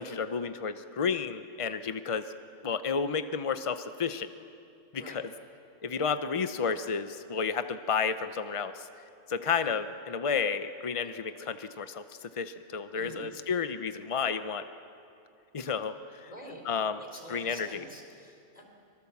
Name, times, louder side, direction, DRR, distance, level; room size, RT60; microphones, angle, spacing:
voice 1, 0.0-2.3 2.6-4.3 4.9-5.3 5.8-8.9 9.3-14.7 15.5-16.3 16.6-17.0 17.3-17.9, left 6 dB, 55° left, 10 dB, 0.3 m, -31 dB
voice 2, 5.0-5.3 12.9-13.3 16.3-16.7 16.9-18.6, equal, 25° left, 1 dB, 3.8 m, -47 dB
24.0 x 22.5 x 7.2 m, 2.6 s
omnidirectional pair, 1.6 m